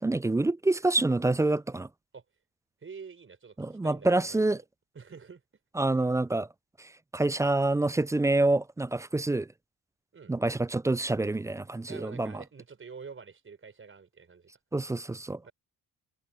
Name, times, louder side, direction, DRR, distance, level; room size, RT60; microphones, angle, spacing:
voice 1, 0.0-1.9 3.6-4.6 5.8-6.5 7.1-9.5 10.3-12.3 14.7-15.4, right 2 dB, 10° right, 0.3 m, -27 dB
voice 2, 2.8-4.6 4.9-5.4 10.1-10.3 11.9-14.5 15.4-15.5, right 5 dB, 35° right, 5.4 m, -47 dB
supercardioid pair, 80°, 37 cm